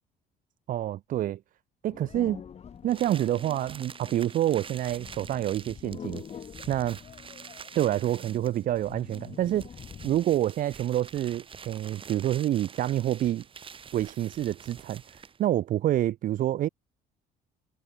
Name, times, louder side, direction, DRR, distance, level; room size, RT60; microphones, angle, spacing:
voice 1, 0.7-1.4 1.8-2.4 2.8-6.2 6.7-7.0 7.7-9.7 10.0-13.4 13.9-15.0 15.4-16.7, right 12 dB, 55° right, 0.5 m, -27 dB
sound 1, 1.9-10.4, left 7 dB, 40° left, 1.5 m, -46 dB
sound 2, 2.9-15.5, right 6 dB, 30° right, 1.3 m, -47 dB
cardioid pair, 110°, 17 cm